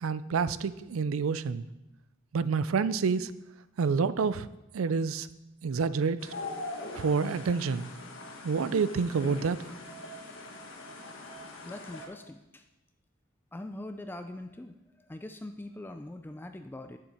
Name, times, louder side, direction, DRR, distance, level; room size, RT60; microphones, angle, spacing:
voice 1, 0.0-1.6 2.3-3.3 3.8-4.5 4.7-5.3 5.6-6.3 6.9-7.9 8.4-9.7, right 5 dB, 75° right, 15 dB, 0.4 m, -28 dB
sound 1, 6.2-12.1, left 2 dB, 65° left, 1.5 m, -42 dB
voice 2, 11.6-12.6 13.5-14.8 15.1-17.0, left 1 dB, 10° left, 7 dB, 0.3 m, -42 dB
9.7 x 7.3 x 4.4 m, 0.97 s
head